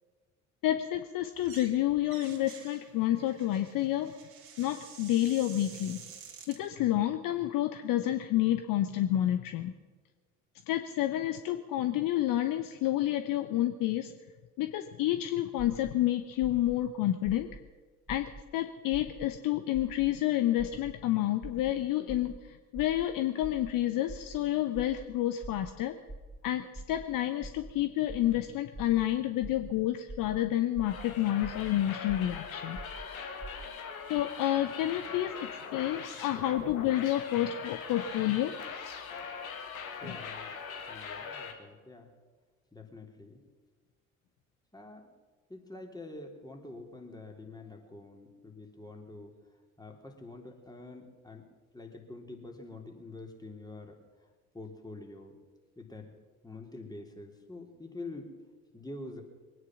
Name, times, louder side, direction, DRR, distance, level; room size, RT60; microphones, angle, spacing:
voice 1, 0.6-4.1 4.6-6.0 6.5-9.7 10.7-14.1 14.6-17.5 18.1-25.9 26.4-32.8 34.1-38.5 40.0-40.2, left 13 dB, 50° left, 9 dB, 0.9 m, -29 dB
sound 1, 1.3-1.8 2.0-6.6, right 7 dB, 60° right, 2.6 m, -50 dB
sound 2, 15.6-15.9 16.4-16.7 17.3-17.6 18.1-18.4 18.9-19.3 19.7-20.1 20.6-20.9 21.4-21.7 22.1-22.4 22.8-23.0 23.4-23.7 24.1-24.4 24.8-25.0 25.4-25.7 26.1-26.4 26.8-27.1 27.4-27.7 28.1-28.4 28.7-29.1 29.4-29.7 30.1-30.4 30.7-31.1 31.4-31.7 32.1-32.4 32.8-33.1 33.4-33.7, right 2 dB, 25° right, 2.2 m, -44 dB
sound 3, 30.8-41.5, left 6 dB, 80° left, 1.7 m, -41 dB
voice 2, 40.0-40.5 40.9-42.1 42.7-43.4 44.7-45.1 45.5-49.4 49.8-51.5 51.7-54.0 54.5-55.3 55.7-56.1 56.4-58.3 58.7-59.2, left 2 dB, 10° left, 2 dB, 3.3 m, -46 dB
22.5 x 9.8 x 6.2 m, 1.4 s
figure-of-eight pair, 50°, 42 cm